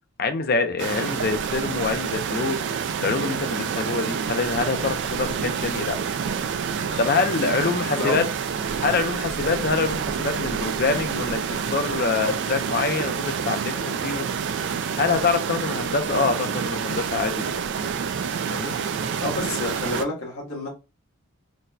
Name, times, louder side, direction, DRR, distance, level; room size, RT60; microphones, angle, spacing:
voice 1, 0.2-2.6 3.0-6.0 7.0-8.2 8.8-14.3 15.0-17.6 18.5-18.7, left 4 dB, 45° left, 0.5 m, -25 dB
sound 1, 0.8-20.0, right 6 dB, 55° right, 0.3 m, -28 dB
voice 2, 6.9-7.2 7.9-8.2 19.2-20.7, left 2 dB, 80° left, 1.4 m, -29 dB
4.0 x 2.2 x 2.6 m
head